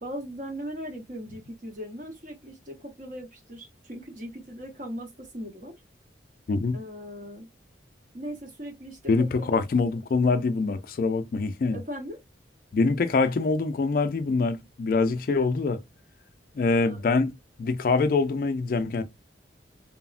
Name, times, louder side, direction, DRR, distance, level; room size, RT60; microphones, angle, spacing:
voice 1, 0.0-5.7 6.7-7.5 8.1-9.6 11.7-12.2 16.8-17.0, equal, 45° right, 0.8 m, -39 dB
voice 2, 9.1-11.8 12.7-15.8 16.5-17.3 17.6-19.0, left 4 dB, 50° left, 0.3 m, -24 dB
3.2 x 2.0 x 2.3 m
head